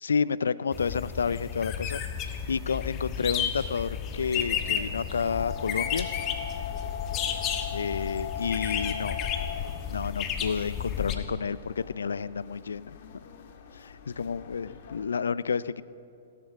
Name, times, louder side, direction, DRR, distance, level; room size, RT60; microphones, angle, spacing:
voice 1, 0.0-2.0 2.3-6.1 7.7-9.2 9.9-13.0 13.8-15.8, left 6 dB, 75° left, 18 dB, 0.4 m, -30 dB
sound 1, 0.7-11.2, left 8 dB, 30° left, 1.5 m, -32 dB
sound 2, 3.9-15.0, left 8 dB, 55° left, 1.7 m, -41 dB
16.5 x 12.5 x 6.3 m, 2.6 s
figure-of-eight pair, 115°, 0 cm